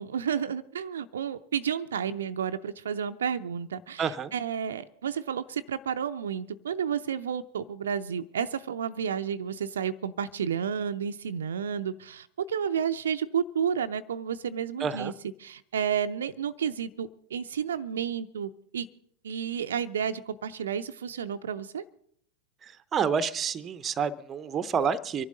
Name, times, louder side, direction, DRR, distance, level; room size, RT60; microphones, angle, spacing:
voice 1, 0.0-15.1 15.4-18.9 19.2-21.9, right 8 dB, 65° right, 9 dB, 0.5 m, -31 dB
voice 2, 4.0-4.3 14.8-15.1 22.9-25.2, right 6 dB, 25° right, 14 dB, 0.7 m, -28 dB
24.5 x 11.5 x 3.9 m, 0.66 s
figure-of-eight pair, 90°, 0 cm